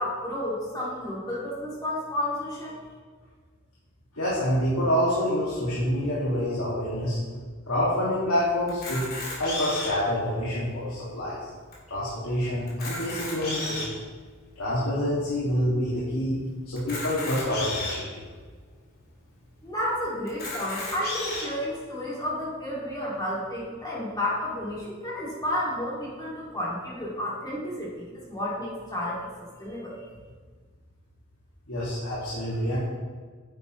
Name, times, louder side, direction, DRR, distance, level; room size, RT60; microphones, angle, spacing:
voice 1, 0.0-2.8 19.6-30.0, left 1 dB, 20° left, -7 dB, 2.3 m, -31 dB
voice 2, 4.1-7.2 7.7-9.0 9.4-11.5 11.9-14.0 14.6-16.4 16.7-18.2 31.7-32.8, equal, 80° left, -8 dB, 2.1 m, -27 dB
Camera, 8.7-10.1 10.7-10.8 11.0-11.2 11.7-11.8 12.6-14.0 14.6-14.7 16.8-18.0 18.7-18.8 19.1-19.2 20.3-21.5, left 2 dB, 50° left, 2.5 m, -33 dB
9.7 x 8.0 x 3.1 m, 1.5 s
head